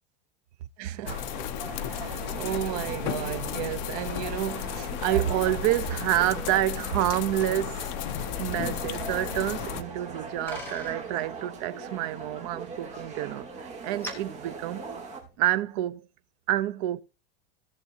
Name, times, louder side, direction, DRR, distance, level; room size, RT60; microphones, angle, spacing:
voice 1, 0.8-1.2 1.7-14.9 15.4-16.1 16.5-17.0, right 13 dB, 45° right, 0.7 m, -29 dB
sound 1, 1.0-15.2, right 4 dB, 25° right, 3.1 m, -41 dB
sound 2, 1.1-9.8, left 12 dB, 50° left, 0.6 m, -34 dB
Bicycle, 9.9-15.5, left 1 dB, 5° left, 2.5 m, -46 dB
18.0 x 6.7 x 2.8 m
supercardioid pair, 175°, 29 cm